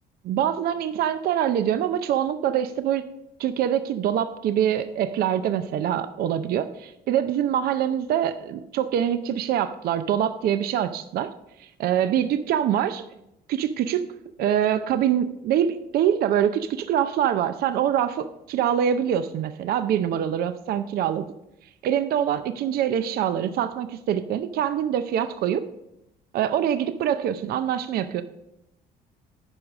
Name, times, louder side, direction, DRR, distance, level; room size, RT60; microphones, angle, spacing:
voice 1, 0.2-3.1 3.4-11.3 11.6-13.0 13.5-14.0 14.4-21.3 21.8-25.6 26.3-28.2, right 9 dB, 65° right, 11 dB, 0.5 m, -24 dB
10.5 x 4.8 x 6.3 m, 0.87 s
cardioid pair, 110°, 17 cm